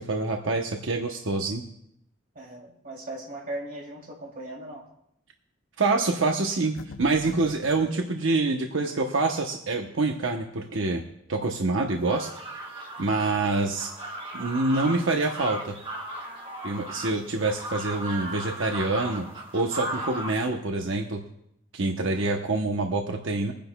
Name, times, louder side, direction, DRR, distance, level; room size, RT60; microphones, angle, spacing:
voice 1, 0.0-1.6 5.8-11.0 11.3-12.3 12.7-13.9 14.3-15.7 16.6-19.3 19.5-21.2 21.7-23.5, right 3 dB, 80° right, 2 dB, 0.9 m, -26 dB
voice 2, 2.3-4.9 16.8-17.2, right 1 dB, 45° right, 0 dB, 2.9 m, -39 dB
sound 1, 6.8-7.9, left 4 dB, 85° left, 0.6 m, -42 dB
sound 2, 12.0-20.3, right 1 dB, 30° right, 1.8 m, -37 dB
22.5 x 10.5 x 2.3 m, 0.76 s
head